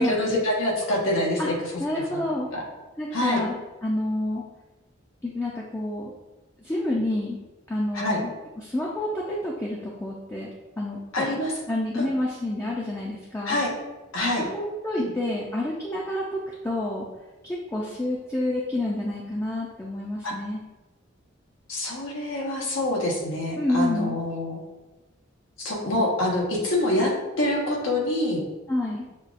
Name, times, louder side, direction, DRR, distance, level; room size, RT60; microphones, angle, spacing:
voice 1, 0.0-1.5 1.9-2.2 2.5-2.6 3.1-3.4 7.9-8.2 11.1-11.5 12.0-12.1 13.4-13.7 14.1-14.5 15.0-15.1 20.2-20.3 21.7-24.6 25.6-28.4, left 1 dB, 90° left, -2 dB, 1.1 m, -26 dB
voice 2, 1.8-2.5 3.0-4.4 5.2-6.1 6.6-7.4 7.7-10.5 10.8-11.4 11.7-13.6 14.5-17.1 17.4-20.6 23.6-24.2 28.7-29.1, left 1 dB, 10° left, -4 dB, 0.4 m, -28 dB
6.8 x 2.4 x 2.5 m, 1.1 s
head